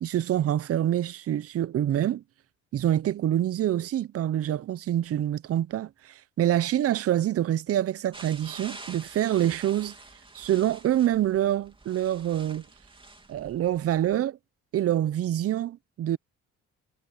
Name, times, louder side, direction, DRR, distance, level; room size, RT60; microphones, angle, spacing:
voice 1, 0.0-2.2 2.7-10.0 10.3-12.6 13.3-14.4 14.7-16.2, right 12 dB, 50° right, 0.6 m, -26 dB
sound 1, 8.1-14.2, right 2 dB, 15° right, 3.0 m, -47 dB
cardioid pair, 90°, 30 cm